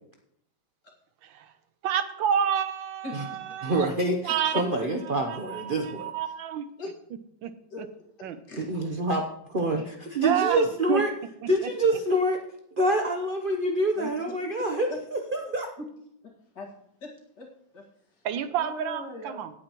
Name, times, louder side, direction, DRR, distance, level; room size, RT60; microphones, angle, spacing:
voice 1, 1.8-3.9 4.2-4.6 5.3-6.6 7.4-7.5 8.2-8.4 10.2-11.0 18.2-19.5, right 9 dB, 75° right, 11 dB, 1.4 m, -29 dB
voice 2, 3.6-6.1 8.6-9.2 9.5-11.1 11.5-12.4 12.7-15.7, right 1 dB, 45° right, 3 dB, 0.6 m, -26 dB
voice 3, 4.5-4.9 6.8-6.9 7.7-7.9 8.5-8.6 9.7-9.8 14.0-14.1 16.2-16.7 17.0-18.3 18.6-19.4, left 3 dB, 55° left, -1 dB, 2.6 m, -40 dB
17.0 x 8.6 x 3.0 m, 0.72 s
omnidirectional pair, 2.2 m